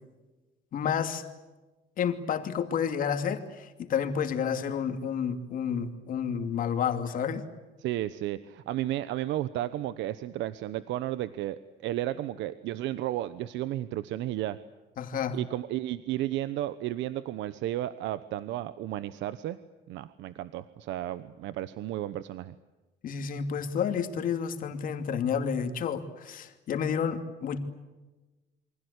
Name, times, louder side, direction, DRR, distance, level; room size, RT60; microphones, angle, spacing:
voice 1, 0.7-1.2 2.0-7.5 15.0-15.4 23.0-27.6, left 7 dB, 50° left, 7 dB, 2.7 m, -30 dB
voice 2, 7.8-14.6 15.3-19.6 19.9-22.5, right 14 dB, 90° right, 14 dB, 1.0 m, -33 dB
28.5 x 25.0 x 8.2 m, 1.2 s
cardioid pair, 180°, 19 cm